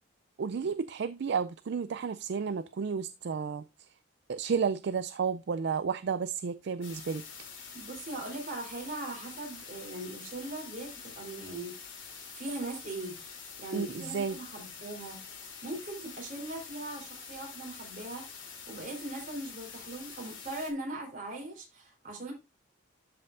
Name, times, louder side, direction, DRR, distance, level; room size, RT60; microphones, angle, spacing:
voice 1, 0.4-3.6 4.3-7.2 13.7-14.4, right 6 dB, 55° right, 0.4 m, -32 dB
sound 1, 6.8-20.7, left 6 dB, 70° left, 3.0 m, -46 dB
voice 2, 7.7-11.8 12.3-13.1 13.6-22.3, right 2 dB, 40° right, 3.7 m, -40 dB
12.5 x 5.4 x 2.5 m
head